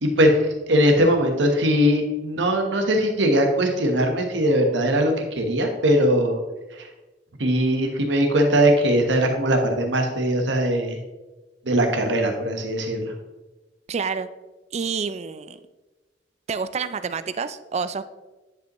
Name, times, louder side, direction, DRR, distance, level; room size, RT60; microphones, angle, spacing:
voice 1, 0.0-6.4 6.7-6.9 7.4-11.0 11.6-13.1, equal, 90° right, 4 dB, 1.2 m, -20 dB
voice 2, 13.9-14.3 14.7-15.6 16.5-18.0, right 5 dB, 40° right, 13 dB, 0.4 m, -28 dB
10.0 x 5.3 x 3.0 m, 1.1 s
head